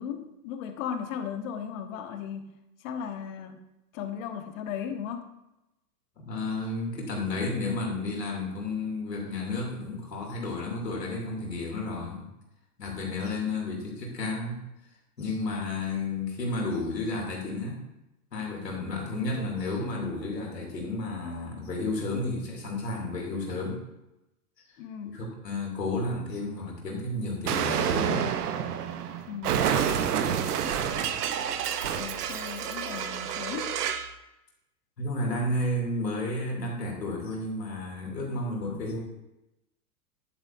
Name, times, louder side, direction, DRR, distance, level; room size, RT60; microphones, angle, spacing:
voice 1, 0.0-2.5 2.8-3.6 3.9-5.3 24.8-25.3 29.3-29.8 32.0-33.8, left 8 dB, 55° left, 7 dB, 1.3 m, -36 dB
voice 2, 6.3-12.3 12.8-14.6 15.2-17.8 18.3-23.8 25.1-28.3 30.1-30.4 35.0-39.0, left 2 dB, 90° left, -1 dB, 3.0 m, -32 dB
Explosion, 27.5-34.1, right 8 dB, 70° right, 1.0 m, -29 dB
10.0 x 9.0 x 2.6 m, 0.91 s
hypercardioid pair, 110°, 48 cm